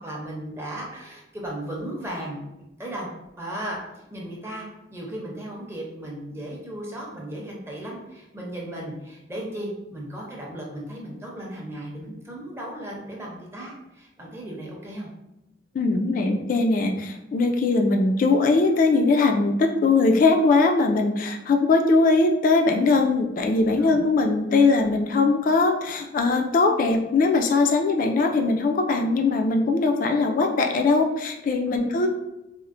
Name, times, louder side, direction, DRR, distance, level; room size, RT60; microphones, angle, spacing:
voice 1, 0.0-2.5 2.8-3.1 3.4-15.1 23.8-24.2 31.6-31.9, right 1 dB, 15° right, -3 dB, 0.6 m, -36 dB
voice 2, 15.7-32.1, left 3 dB, 45° left, 4 dB, 0.3 m, -21 dB
4.2 x 2.0 x 2.5 m, 0.93 s
head